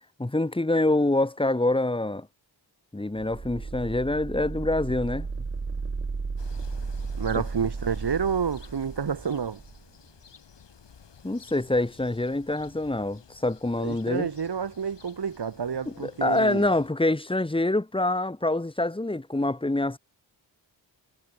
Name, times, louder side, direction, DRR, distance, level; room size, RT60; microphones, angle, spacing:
voice 1, 0.2-2.3 2.9-5.3 7.4-7.5 11.2-14.3 15.9-20.0, left 2 dB, 10° left, 2.1 m, -26 dB
sound 1, 3.2-9.8, right 4 dB, 25° right, 1.2 m, -34 dB
sound 2, 6.4-16.9, left 6 dB, 65° left, 5.6 m, -52 dB
voice 2, 7.2-9.6 13.8-16.7, right 6 dB, 60° right, 3.0 m, -29 dB
wide cardioid pair, 110°, 45 cm